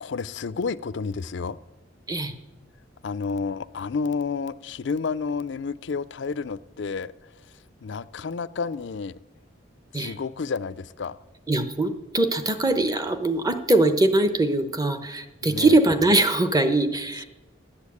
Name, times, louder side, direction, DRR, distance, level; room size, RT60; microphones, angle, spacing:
voice 1, 0.0-1.6 3.0-7.1 7.8-9.2 9.9-11.2 15.4-15.8, left 5 dB, 65° left, 17 dB, 0.4 m, -30 dB
voice 2, 11.5-17.3, right 2 dB, 20° right, 9 dB, 0.9 m, -22 dB
11.5 x 8.3 x 8.4 m, 1.1 s
head